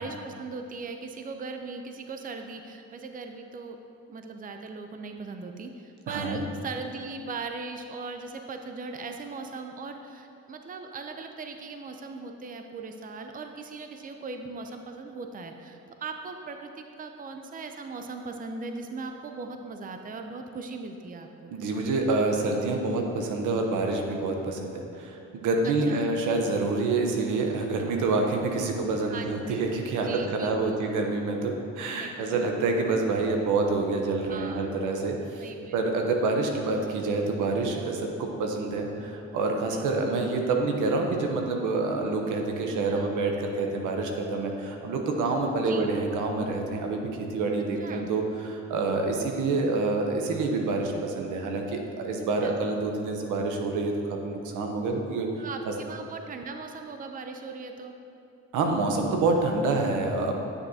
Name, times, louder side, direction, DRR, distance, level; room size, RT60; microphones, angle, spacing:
voice 1, 0.0-3.8 4.1-21.5 25.6-26.1 29.1-29.7 30.0-30.8 31.9-32.4 34.3-34.7 35.4-35.8 39.7-39.9 42.9-43.1 45.6-45.9 47.8-48.1 52.4-52.6 55.4-57.9, right 4 dB, 30° right, 5 dB, 0.5 m, -39 dB
voice 2, 6.1-6.4 21.5-55.7 58.5-60.4, right 3 dB, 90° right, 2 dB, 0.9 m, -27 dB
9.7 x 6.6 x 2.8 m, 2.7 s
cardioid pair, 90°, 30 cm